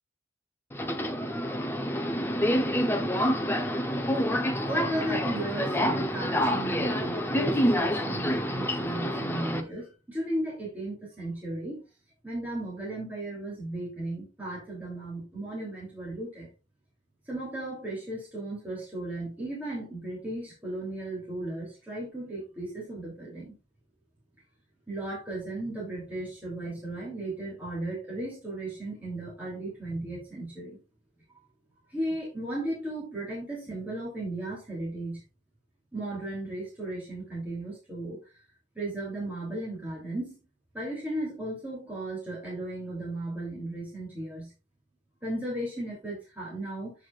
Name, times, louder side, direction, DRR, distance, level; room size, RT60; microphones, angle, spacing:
Subway metro underground, 0.7-9.6, equal, 10° left, 0.8 m, -27 dB
voice 1, 4.7-11.8 12.2-16.5 17.3-23.6 24.9-30.8 31.9-35.2 35.9-38.2 38.7-40.4 40.7-44.5 45.2-46.9, right 1 dB, 10° right, -5 dB, 3.1 m, -35 dB
8.5 x 7.9 x 2.5 m, 0.28 s
head